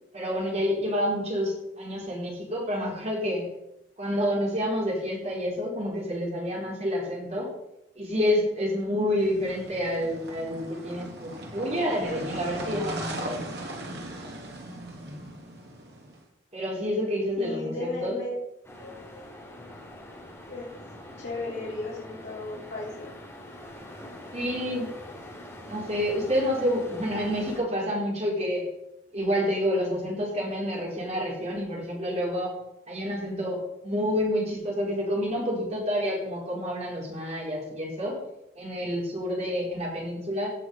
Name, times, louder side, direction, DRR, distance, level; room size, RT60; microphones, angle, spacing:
voice 1, 0.1-3.5 4.0-7.5 8.0-13.5 16.5-18.2 24.3-24.9 25.6-28.7 29.1-32.6 32.9-38.2 38.6-40.5, equal, 35° right, -3 dB, 4.4 m, -28 dB
sound 1, 9.2-16.2, right 1 dB, 55° right, 2.5 m, -38 dB
voice 2, 17.4-18.4 18.8-19.2 20.5-20.6 21.2-23.1, left 2 dB, 55° left, -7 dB, 3.3 m, -35 dB
sound 2, 18.6-27.6, left 1 dB, 15° left, 3.0 m, -44 dB
17.0 x 6.2 x 5.7 m, 0.85 s
head